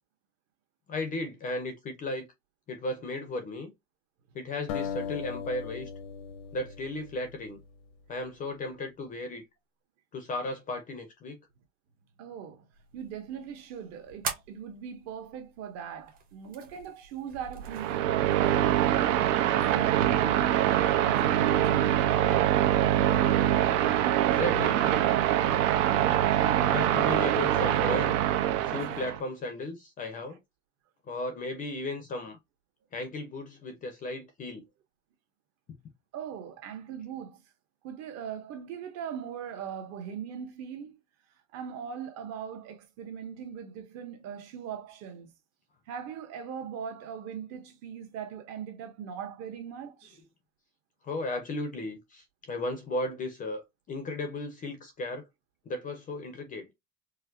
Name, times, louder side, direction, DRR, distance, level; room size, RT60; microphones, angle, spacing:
voice 1, 0.9-2.3 2.7-3.7 4.3-5.9 6.5-7.6 8.1-9.4 10.1-11.4 19.5-19.6 24.1-24.9 26.6-28.2 28.6-30.4 31.1-32.4 32.9-34.6 51.0-55.2 55.7-56.7, left 2 dB, 20° left, 0.6 m, -35 dB
sound 1, 4.7-7.9, left 7 dB, 70° left, 0.8 m, -38 dB
voice 2, 12.2-12.7 12.9-19.2 19.7-22.1 28.7-28.8 36.1-37.4 37.8-41.0 41.5-45.3 45.9-50.2, right 8 dB, 40° right, 1.1 m, -40 dB
sound 2, 12.7-18.6, right 6 dB, 20° right, 0.9 m, -43 dB
sound 3, 17.6-29.2, right 11 dB, 65° right, 0.8 m, -24 dB
4.5 x 2.0 x 2.5 m
cardioid pair, 165°, 39 cm